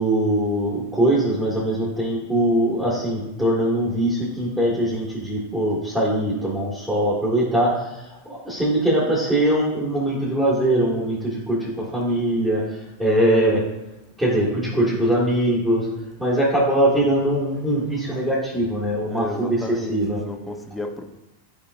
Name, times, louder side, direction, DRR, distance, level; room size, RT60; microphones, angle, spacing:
voice 1, 0.0-13.6 14.2-15.9 16.2-20.2, right 1 dB, 10° right, -9 dB, 2.0 m, -22 dB
voice 2, 19.1-21.0, left 2 dB, 5° left, 4 dB, 0.8 m, -33 dB
8.5 x 4.8 x 2.6 m, 0.93 s
hypercardioid pair, 95°, 0 cm